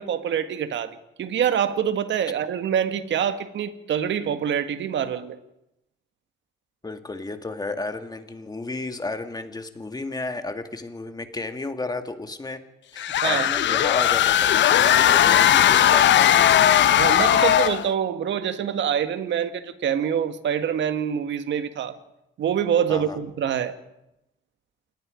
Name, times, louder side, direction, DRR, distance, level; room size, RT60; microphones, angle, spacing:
voice 1, 0.0-5.4 13.2-13.5 17.0-22.0 22.4-23.7, right 8 dB, 70° right, 1.7 m, -25 dB
voice 2, 6.8-12.6 12.9-16.9 22.9-23.2, left 2 dB, 20° left, 2.1 m, -33 dB
sound 1, 13.0-17.9, left 11 dB, 65° left, 0.8 m, -18 dB
28.0 x 19.0 x 5.1 m
cardioid pair, 90°, 20 cm